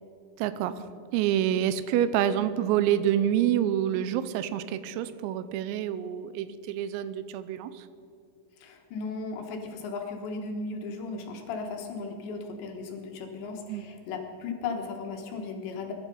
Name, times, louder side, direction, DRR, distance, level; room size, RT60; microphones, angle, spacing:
voice 1, 0.4-0.8 1.1-7.8 13.7-13.8, right 10 dB, 85° right, 13 dB, 3.4 m, -27 dB
voice 2, 8.6-15.9, left 4 dB, 70° left, 2 dB, 3.2 m, -36 dB
22.0 x 11.0 x 5.3 m, 2.5 s
omnidirectional pair, 5.9 m